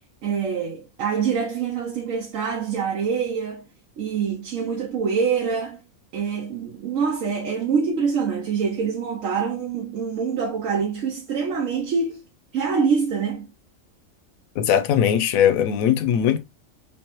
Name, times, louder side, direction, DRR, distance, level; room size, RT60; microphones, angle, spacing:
voice 1, 0.2-3.7 4.0-5.8 6.1-12.2 12.5-13.5, right 6 dB, 70° right, 1.1 m, -25 dB
voice 2, 14.6-16.4, left 9 dB, 85° left, 1.0 m, -20 dB
3.3 x 3.0 x 2.9 m
omnidirectional pair, 1.4 m